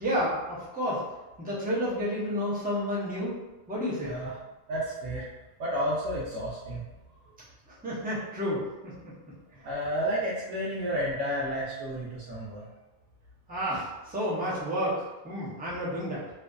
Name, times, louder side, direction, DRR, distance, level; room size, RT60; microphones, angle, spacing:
voice 1, 0.0-1.0 1.4-3.3 3.7-4.1 7.8-8.9 9.5-9.6 13.5-16.3, equal, 10° right, -7 dB, 0.4 m, -30 dB
voice 2, 4.0-4.3 4.7-5.2 5.6-6.8 9.6-12.7, equal, 85° right, -7 dB, 0.9 m, -31 dB
2.5 x 2.4 x 2.2 m, 1.1 s
omnidirectional pair, 1.3 m